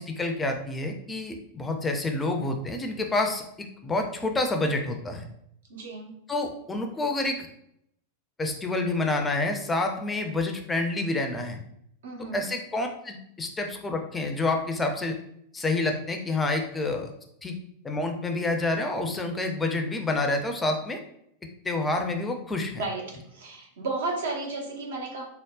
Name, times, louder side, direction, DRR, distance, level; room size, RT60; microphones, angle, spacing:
voice 1, 0.0-5.3 6.3-7.4 8.4-11.6 12.3-15.2 15.5-17.1 17.4-17.6 17.8-21.0 21.6-22.8, left 2 dB, 15° left, 4 dB, 0.4 m, -28 dB
voice 2, 5.7-6.2 12.0-12.5 22.8-25.2, right 3 dB, 60° right, 0 dB, 0.7 m, -33 dB
3.5 x 2.1 x 2.3 m, 0.73 s
figure-of-eight pair, 90°, 0 cm